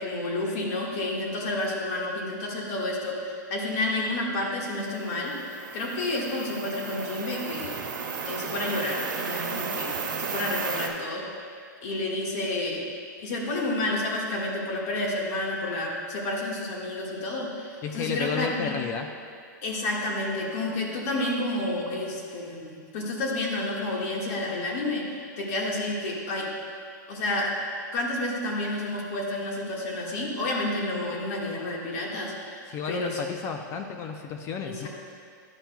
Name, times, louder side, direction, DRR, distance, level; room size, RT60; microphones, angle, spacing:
voice 1, 0.0-7.9 8.2-9.9 10.2-11.3 11.8-12.8 13.2-18.8 19.6-26.5 27.1-27.6 27.9-33.2 34.6-34.9, left 2 dB, 50° left, -2 dB, 1.6 m, -30 dB
sound 1, 5.0-10.9, right 5 dB, 85° right, 1.1 m, -34 dB
voice 2, 17.8-19.1 32.7-34.9, left 6 dB, 25° left, 5 dB, 0.4 m, -32 dB
11.5 x 5.8 x 2.3 m, 2.3 s
hypercardioid pair, 145°, 10 cm